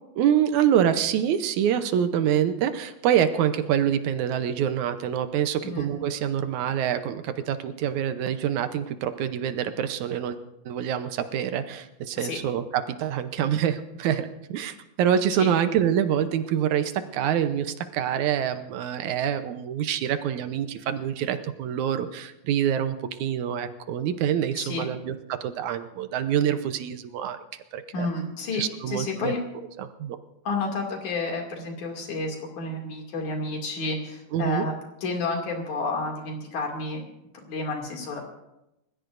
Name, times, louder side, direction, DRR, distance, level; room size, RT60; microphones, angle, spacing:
voice 1, 0.2-10.4 10.7-27.4 27.7-28.1 28.5-29.3 29.8-30.2 34.3-34.7, right 9 dB, 75° right, 9 dB, 2.2 m, -26 dB
voice 2, 24.6-24.9 27.9-29.4 30.5-34.7 35.0-37.0 37.3-38.2, left 3 dB, 75° left, 1 dB, 3.9 m, -30 dB
29.5 x 15.5 x 2.6 m, 0.90 s
omnidirectional pair, 3.5 m